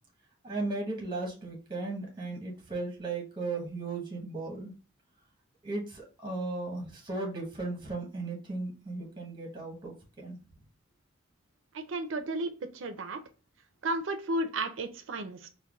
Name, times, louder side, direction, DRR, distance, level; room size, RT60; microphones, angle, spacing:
voice 1, 0.4-4.7 5.6-9.9 10.2-10.4, right 3 dB, 25° right, -1 dB, 0.9 m, -36 dB
voice 2, 11.7-13.2 13.8-15.5, right 2 dB, 70° right, 7 dB, 0.5 m, -33 dB
5.2 x 2.2 x 2.3 m, 0.36 s
head